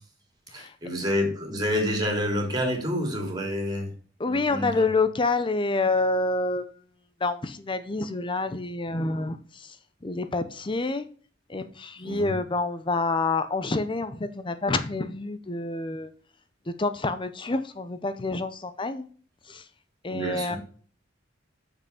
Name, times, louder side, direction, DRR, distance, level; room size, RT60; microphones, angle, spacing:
voice 1, 0.5-3.9 4.2-4.9 12.0-12.3 20.1-20.6, equal, 20° right, 3.1 m, -28 dB
voice 2, 4.2-6.7 7.2-9.8 10.0-11.1 11.5-16.1 16.7-19.1 19.5-19.6 20.0-20.6, left 3 dB, 25° left, 0.6 m, -28 dB
7.0 x 5.8 x 6.9 m
head